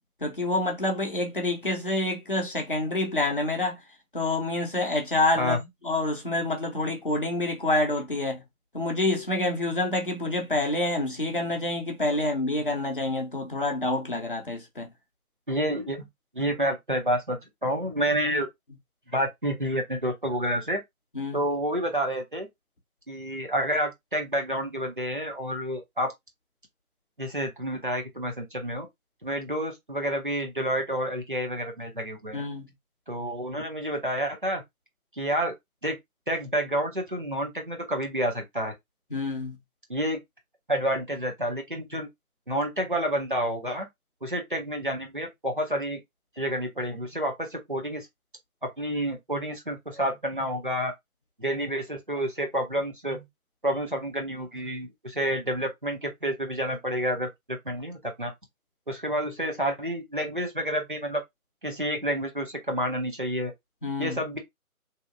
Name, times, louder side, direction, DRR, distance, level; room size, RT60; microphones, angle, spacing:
voice 1, 0.2-3.8 4.1-5.6 5.8-8.4 8.7-14.9 21.1-21.4 32.3-32.7 39.1-39.6 63.8-64.2, left 2 dB, 40° left, 0.6 m, -27 dB
voice 2, 15.5-16.1 16.3-18.5 19.1-20.8 21.3-22.5 23.1-26.1 27.2-28.9 29.2-32.4 33.1-34.6 35.2-35.5 35.8-36.0 36.3-38.7 39.9-40.2 40.7-42.1 42.5-43.9 44.2-46.0 46.4-48.1 48.6-50.9 51.4-53.3 53.6-58.3 58.9-61.2 61.6-63.5 64.0-64.4, equal, 35° right, 0.6 m, -29 dB
2.8 x 2.6 x 2.4 m
figure-of-eight pair, 160°, 44 cm